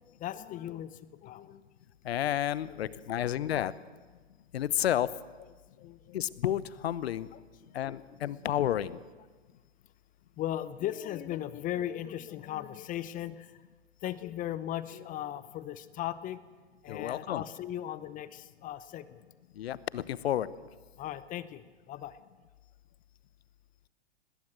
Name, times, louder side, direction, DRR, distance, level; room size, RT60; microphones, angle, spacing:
voice 1, 0.0-1.6 2.7-3.0 5.8-6.3 7.3-7.4 7.7-7.8 10.4-13.6 14.0-16.4 16.8-19.2 21.0-22.2, left 12 dB, 25° left, 15 dB, 0.7 m, -38 dB
voice 2, 2.0-3.7 4.5-5.1 6.1-7.3 7.7-9.0 16.9-17.4 19.6-20.5, left 11 dB, 70° left, 18 dB, 0.9 m, -31 dB
20.0 x 17.5 x 7.7 m, 1.4 s
hypercardioid pair, 110°, 33 cm